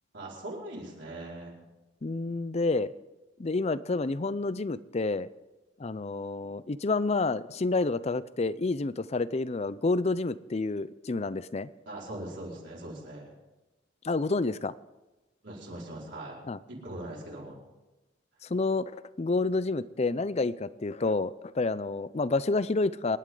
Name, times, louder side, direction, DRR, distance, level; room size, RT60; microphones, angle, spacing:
voice 1, 0.1-1.5 11.9-13.3 15.4-16.4 16.7-17.6, right 1 dB, 60° right, -4 dB, 4.8 m, -41 dB
voice 2, 2.0-2.9 3.4-5.3 5.8-11.7 14.0-14.7 16.4-16.6 18.5-23.2, left 3 dB, 35° left, 16 dB, 0.5 m, -29 dB
26.5 x 11.0 x 3.9 m, 1.1 s
head